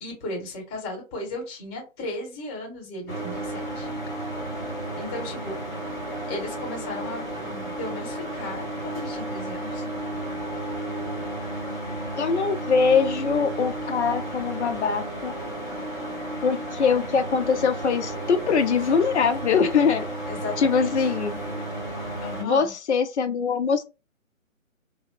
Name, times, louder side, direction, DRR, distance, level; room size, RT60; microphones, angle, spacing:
voice 1, 0.0-3.9 4.9-5.6 6.3-9.8 20.3-21.1 22.2-22.7, left 2 dB, 15° left, 1.4 m, -36 dB
sound 1, 3.1-22.4, right 1 dB, 35° left, 1.5 m, -33 dB
voice 2, 12.1-15.3 16.4-20.0 20.6-21.4 22.4-23.8, left 5 dB, 55° left, 0.5 m, -23 dB
2.8 x 2.0 x 2.3 m
figure-of-eight pair, 140°, 41 cm